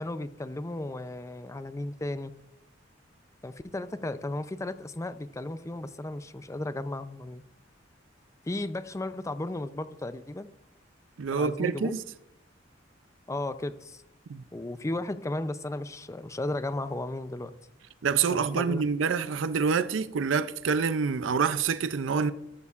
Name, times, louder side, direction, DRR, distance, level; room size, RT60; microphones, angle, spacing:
voice 1, 0.0-2.3 3.4-7.4 8.5-10.5 11.3-11.9 13.3-14.0 14.5-17.5 18.3-18.8, left 2 dB, 15° left, 0.5 m, -35 dB
voice 2, 11.2-12.0 14.3-14.4 18.0-22.3, right 5 dB, 80° right, 0.4 m, -27 dB
14.0 x 12.5 x 2.4 m
head